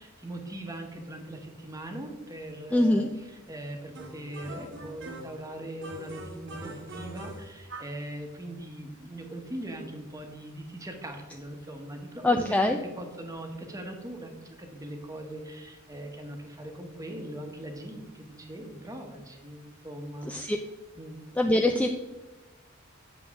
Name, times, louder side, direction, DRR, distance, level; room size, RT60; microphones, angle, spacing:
voice 1, 0.0-20.3 21.0-21.2, right 1 dB, 15° right, 4 dB, 1.0 m, -40 dB
voice 2, 2.7-3.1 12.2-12.8 20.3-20.6 21.4-21.9, left 1 dB, 5° left, 4 dB, 0.3 m, -23 dB
sound 1, 3.9-5.4 5.8-8.0, right 1 dB, 65° right, 1.1 m, -42 dB
8.2 x 6.3 x 3.6 m, 1.1 s
head